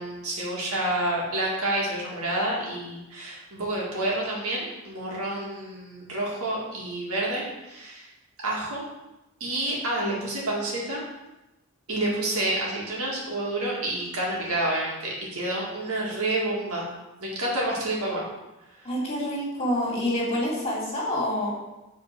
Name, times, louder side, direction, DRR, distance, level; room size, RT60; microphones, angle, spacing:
voice 1, 0.0-8.1 8.4-8.9 9.4-11.0 11.9-16.9 17.2-18.2, right 1 dB, 90° right, -4 dB, 2.0 m, -29 dB
voice 2, 18.8-21.5, left 1 dB, 25° left, -4 dB, 2.0 m, -27 dB
5.1 x 3.9 x 5.9 m, 0.99 s
head